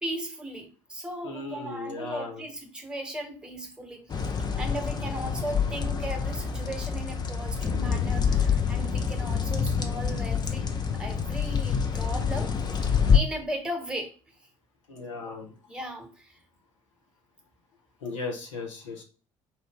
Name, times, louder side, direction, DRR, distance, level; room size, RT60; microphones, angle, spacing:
voice 1, 0.0-12.5 12.8-14.1 15.7-16.4, right 1 dB, 5° right, 3 dB, 1.2 m, -37 dB
voice 2, 1.2-2.4 14.9-15.5 18.0-19.0, left 3 dB, 70° left, 1 dB, 1.1 m, -36 dB
sound 1, 4.1-13.2, left 6 dB, 25° left, 0.6 m, -26 dB
4.5 x 2.5 x 3.5 m, 0.37 s
figure-of-eight pair, 55°, 16 cm